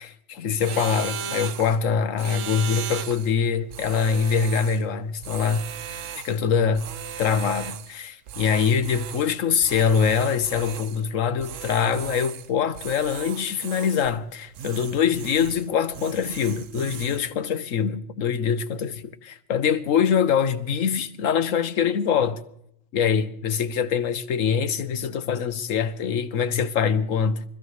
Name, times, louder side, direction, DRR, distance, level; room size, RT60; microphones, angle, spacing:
voice 1, 0.0-5.6 5.9-6.9 7.2-22.4 22.9-27.4, left 7 dB, 90° left, 1.3 m, -24 dB
sound 1, 0.6-1.8 2.2-3.3 3.7-4.8 5.2-6.4 6.7-7.9 8.3-9.3 9.6-11.0 11.4-12.5 12.7-14.2 14.5-15.7 15.9-17.3, right 8 dB, 80° right, 1.1 m, -36 dB
24.0 x 14.5 x 3.2 m
omnidirectional pair, 1.3 m